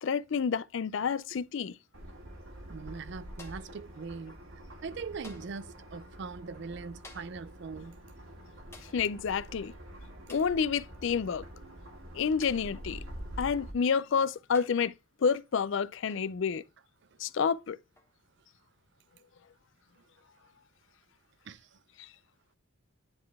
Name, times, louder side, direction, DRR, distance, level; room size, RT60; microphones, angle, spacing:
voice 1, 0.0-1.8 8.9-9.7 10.3-11.5 12.1-13.0 13.4-14.9 15.2-16.6 17.2-17.8 22.0-22.1, left 6 dB, 60° left, 0.4 m, -29 dB
sound 1, 1.9-13.7, right 1 dB, 75° right, 1.9 m, -46 dB
voice 2, 2.7-4.4 4.8-8.0 21.5-21.8, right 4 dB, 55° right, 0.4 m, -41 dB
sound 2, 3.4-3.8 5.2-5.6 7.0-7.5 8.7-9.1 10.3-10.6 12.4-12.8 13.8-13.9 14.5-14.9 16.1-16.4 18.0-18.2, left 3 dB, 10° left, 0.9 m, -52 dB
9.8 x 3.9 x 3.5 m
head